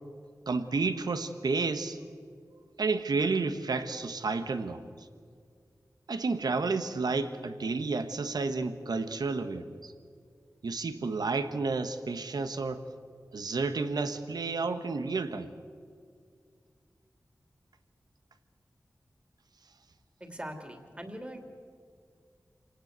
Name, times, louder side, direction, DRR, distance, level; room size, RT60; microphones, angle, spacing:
voice 1, 0.5-2.0 2.8-5.1 6.1-9.9 10.6-12.9 13.3-15.5, right 4 dB, 90° right, 9 dB, 1.2 m, -31 dB
voice 2, 20.2-21.4, right 1 dB, 20° right, 5 dB, 2.9 m, -41 dB
27.0 x 18.0 x 8.1 m, 2.1 s
wide cardioid pair, 85°, 7 cm